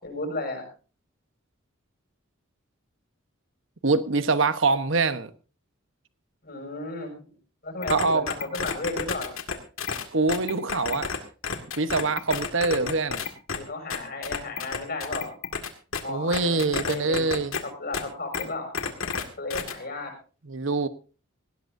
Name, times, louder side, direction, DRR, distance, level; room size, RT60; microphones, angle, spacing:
voice 1, 0.0-0.7 6.4-7.3 7.6-9.4 12.7-12.9 13.5-15.3 15.9-17.4 17.6-18.7 19.4-20.1, left 2 dB, 50° left, 6.5 m, -34 dB
voice 2, 3.8-5.3 7.9-8.3 10.1-11.1 11.8-13.3 16.1-17.6 20.5-20.9, right 3 dB, 65° right, 1.1 m, -24 dB
sound 1, 7.8-11.2 11.4-13.6 13.9-16.0 16.3-17.6 17.9-18.0 18.3-18.4 18.7-19.2 19.5-19.7, left 5 dB, 75° left, 2.1 m, -30 dB
19.0 x 17.0 x 2.7 m
head